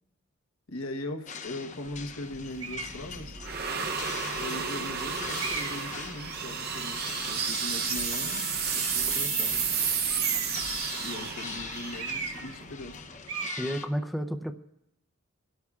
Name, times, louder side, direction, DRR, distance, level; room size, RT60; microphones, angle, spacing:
voice 1, 0.7-3.4 4.4-8.6 8.9-9.8 11.0-13.0, left 1 dB, 80° left, 1.2 m, -40 dB
sound 1, 1.3-13.9, left 6 dB, 35° left, 0.7 m, -42 dB
sound 2, 1.9-13.2, right 6 dB, 50° right, 1.0 m, -32 dB
sound 3, 2.6-3.0 3.8-3.9 5.4-5.9 10.1-10.6 12.0-12.6 12.8-13.0 13.3-13.7, right 5 dB, 80° right, 1.1 m, -36 dB
voice 2, 13.6-14.5, equal, ahead, 0.6 m, -31 dB
28.5 x 12.5 x 2.4 m
head